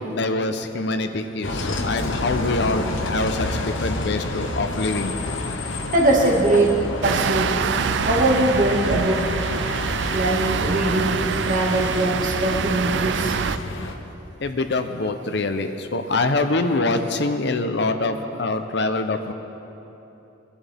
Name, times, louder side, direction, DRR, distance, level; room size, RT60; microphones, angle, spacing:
voice 1, 0.0-5.2 14.4-19.3, left 2 dB, 65° left, 8 dB, 0.7 m, -24 dB
Bus, 1.4-13.9, left 2 dB, 90° left, 1.0 m, -29 dB
voice 2, 5.9-6.8 7.0-7.6 8.1-9.3 10.1-13.4, right 1 dB, 45° right, -1 dB, 2.0 m, -21 dB
sound 1, 7.0-13.6, right 6 dB, 65° right, 0.4 m, -25 dB
22.0 x 11.5 x 3.5 m, 3.0 s
head